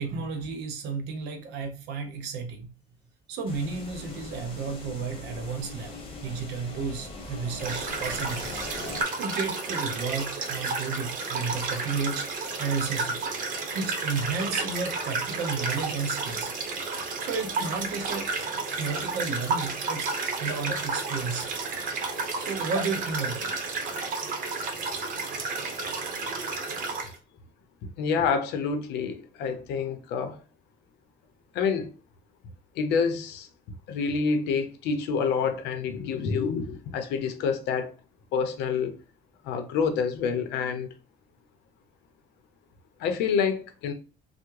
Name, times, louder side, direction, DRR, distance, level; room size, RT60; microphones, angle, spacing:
voice 1, 0.0-2.7 3.3-5.9 6.2-8.6 8.9-12.3 12.6-13.3 13.7-16.5 17.2-18.3 18.7-21.5 22.3-23.5, right 5 dB, 90° right, 0.7 m, -32 dB
sound 1, 3.5-9.0, left 2 dB, 35° left, 1.0 m, -40 dB
sound 2, 7.6-27.1, right 4 dB, 55° right, 0.8 m, -31 dB
voice 2, 27.8-30.4 31.5-31.9 32.8-33.5 33.9-37.9 38.3-38.9 39.4-40.9 43.0-43.9, left 5 dB, 85° left, 0.6 m, -27 dB
3.4 x 2.0 x 3.1 m
cardioid pair, 110°, 17 cm